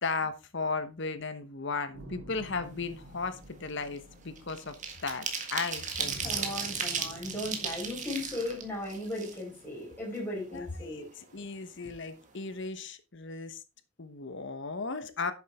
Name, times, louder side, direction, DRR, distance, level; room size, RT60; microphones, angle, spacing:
voice 1, 0.0-4.8 5.0-6.5 10.5-13.6 14.0-15.3, left 4 dB, 60° left, 11 dB, 1.1 m, -36 dB
sound 1, 1.9-5.5 6.0-9.3, right 1 dB, 80° right, 3.1 m, -50 dB
sound 2, 2.8-3.0 3.3-9.8 10.1-10.2 10.6-11.5 11.8-12.0 12.3-12.6, right 6 dB, 35° right, 1.8 m, -36 dB
voice 2, 6.2-11.1, left 1 dB, 10° left, -5 dB, 4.7 m, -37 dB
10.0 x 7.3 x 3.6 m, 0.29 s
head